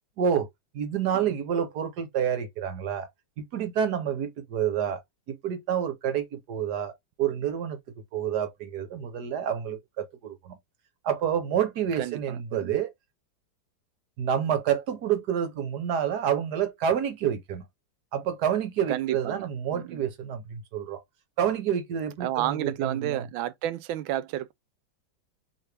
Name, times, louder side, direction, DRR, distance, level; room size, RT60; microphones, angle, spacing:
voice 1, 0.2-0.5 0.7-3.1 3.4-5.0 5.3-6.9 7.2-7.8 8.1-10.6 11.0-12.9 14.2-17.6 18.1-21.0 21.4-23.2, right 8 dB, 60° right, 1.3 m, -28 dB
voice 2, 12.0-12.8 18.9-20.0 22.2-24.5, right 13 dB, 90° right, 1.4 m, -31 dB
4.7 x 3.3 x 3.3 m
omnidirectional pair, 2.1 m